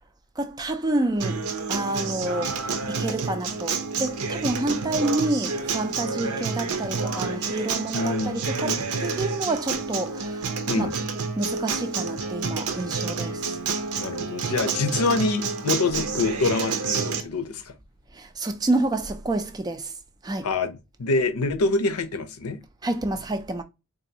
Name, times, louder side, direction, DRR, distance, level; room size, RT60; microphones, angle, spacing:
voice 1, 0.4-1.4 1.7-10.9 11.4-13.6 18.1-19.9 20.2-20.5 22.8-23.6, right 2 dB, 15° right, 0.3 m, -28 dB
Acoustic guitar, 1.2-17.2, right 4 dB, 85° right, 0.6 m, -29 dB
voice 2, 7.9-8.8 10.7-10.9 14.0-17.7 20.4-20.7 21.0-22.6, left 3 dB, 85° left, 0.7 m, -26 dB
3.9 x 2.5 x 2.7 m
head